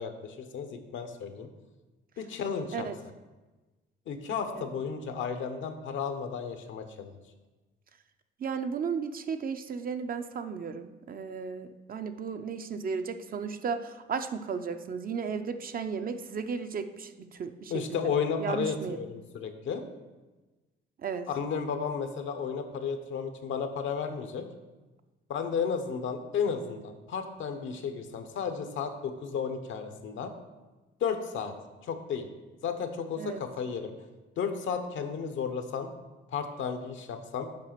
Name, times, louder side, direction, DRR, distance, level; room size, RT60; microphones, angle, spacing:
voice 1, 0.0-1.5 2.2-2.9 4.1-7.1 17.7-19.8 21.3-24.5 25.3-30.3 31.0-31.5 31.9-32.3 32.6-33.9 34.4-35.9 36.3-37.5, left 6 dB, 75° left, 7 dB, 0.9 m, -33 dB
voice 2, 8.4-18.0 18.4-19.0 21.0-21.3 33.2-33.4, right 6 dB, 45° right, 8 dB, 0.6 m, -34 dB
7.5 x 4.9 x 5.9 m, 1.2 s
cardioid pair, 90°, 20 cm